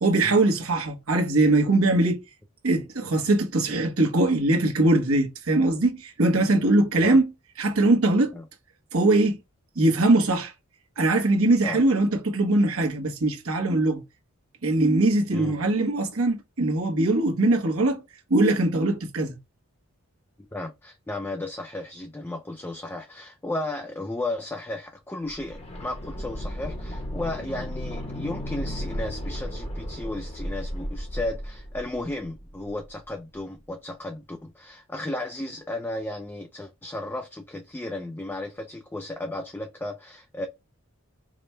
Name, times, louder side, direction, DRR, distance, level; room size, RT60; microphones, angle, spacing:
voice 1, 0.0-2.2 2.6-7.3 7.6-8.4 8.9-9.4 9.7-10.5 11.0-14.0 14.6-18.0 18.3-19.4, right 2 dB, 75° right, 1.1 m, -21 dB
voice 2, 20.5-40.5, left 2 dB, 10° left, 0.4 m, -34 dB
sound 1, 25.2-33.0 33.3-33.4, equal, 25° left, 0.9 m, -34 dB
5.0 x 2.2 x 3.0 m
head